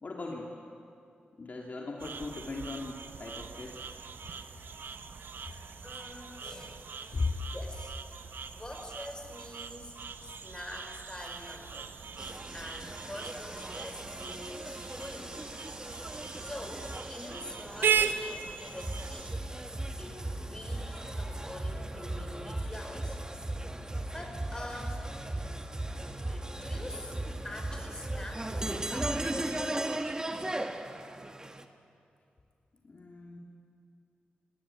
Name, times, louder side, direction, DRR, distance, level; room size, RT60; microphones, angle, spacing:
voice 1, 0.0-0.5 1.4-3.8 7.1-7.4 32.8-33.4, left 3 dB, 50° left, -1 dB, 2.4 m, -37 dB
sound 1, 2.0-19.3, right 7 dB, 75° right, 1.0 m, -38 dB
voice 2, 5.8-8.2 8.5-9.9 10.2-11.9 12.5-15.5 16.1-19.4 20.0-23.2 23.8-25.0 26.3-27.1 27.4-29.9, left 1 dB, 20° left, 3 dB, 5.1 m, -45 dB
sound 2, 12.2-31.6, right 1 dB, 20° right, 1.5 m, -37 dB
21.5 x 16.0 x 9.9 m, 2.5 s
cardioid pair, 60°, 4 cm